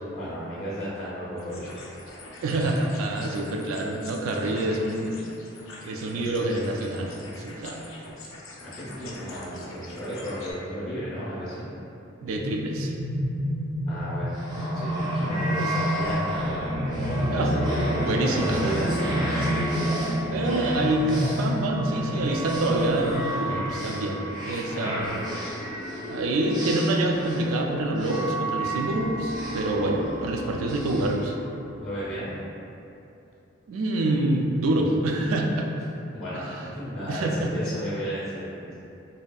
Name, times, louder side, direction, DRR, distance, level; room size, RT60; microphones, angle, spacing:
voice 1, 0.1-1.8 8.6-11.7 13.9-19.5 24.7-25.2 31.8-32.3 36.1-38.7, equal, 30° left, -11 dB, 0.5 m, -33 dB
sound 1, 1.4-10.5, left 2 dB, 85° left, 0.4 m, -44 dB
voice 2, 2.4-5.2 5.8-7.1 7.4-7.9 12.2-12.9 14.9-15.1 17.3-17.5 18.0-18.7 20.3-25.2 26.1-31.4 33.7-35.7 37.1-37.5, right 1 dB, 85° right, 1 dB, 0.3 m, -26 dB
sound 2, 12.3-22.7, equal, 65° right, 0.7 m, -30 dB
sound 3, 14.3-32.0, right 1 dB, 20° right, 0.5 m, -32 dB
2.7 x 2.4 x 2.2 m, 2.7 s
head